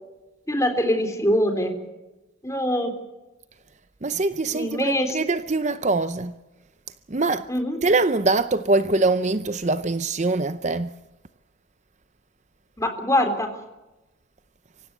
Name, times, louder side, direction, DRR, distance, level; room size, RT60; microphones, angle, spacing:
voice 1, 0.5-1.7 2.4-2.9 4.5-5.2 7.5-7.8 12.8-13.5, left 1 dB, 15° left, 3.5 m, -23 dB
voice 2, 4.0-6.3 7.1-7.5 7.8-10.9, right 3 dB, 35° right, 0.7 m, -23 dB
24.5 x 16.0 x 8.1 m
head